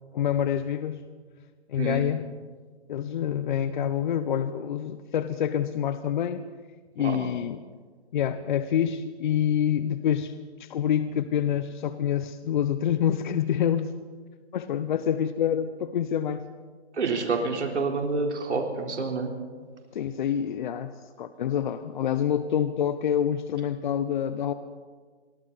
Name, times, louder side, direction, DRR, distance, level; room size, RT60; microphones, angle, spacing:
voice 1, 0.1-1.0 1.7-2.2 2.9-6.4 7.0-7.6 8.1-10.3 10.6-13.9 14.5-16.4 19.9-24.5, left 9 dB, 45° left, 11 dB, 0.8 m, -27 dB
voice 2, 16.9-19.3, right 4 dB, 85° right, 2 dB, 4.0 m, -28 dB
27.0 x 23.5 x 4.1 m, 1.6 s
hypercardioid pair, 155°, 34 cm